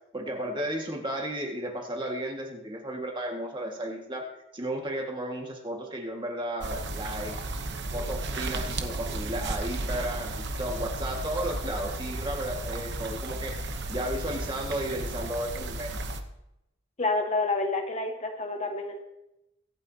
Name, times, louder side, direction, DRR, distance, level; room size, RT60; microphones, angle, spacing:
voice 1, 0.1-7.4 7.9-16.0, right 1 dB, 25° right, 1 dB, 1.8 m, -34 dB
sound 1, 6.6-16.2, right 2 dB, 60° right, 1.0 m, -34 dB
voice 2, 17.0-19.0, left 3 dB, 35° left, 3 dB, 1.2 m, -28 dB
23.5 x 9.0 x 2.8 m, 0.89 s
head